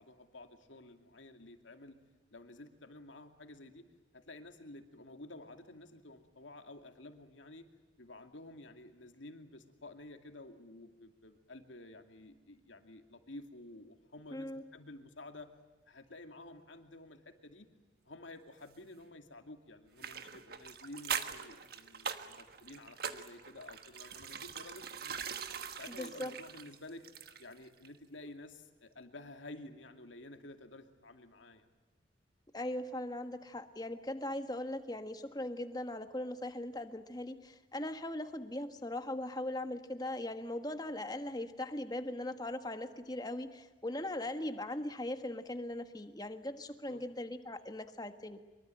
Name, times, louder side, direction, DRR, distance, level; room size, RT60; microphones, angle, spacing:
voice 1, 0.0-2.0 2.3-3.8 4.1-7.7 8.0-15.5 15.9-17.7 18.1-25.3 25.7-27.0 27.4-31.6 46.9-47.0, left 2 dB, 80° left, 6 dB, 2.5 m, -51 dB
voice 2, 14.3-14.6 25.9-26.3 32.5-48.4, left 1 dB, 20° left, 8 dB, 1.5 m, -39 dB
sound 1, 20.0-27.6 27.8-28.0, right 7 dB, 50° right, 1.4 m, -42 dB
24.0 x 23.5 x 9.1 m, 1.2 s
head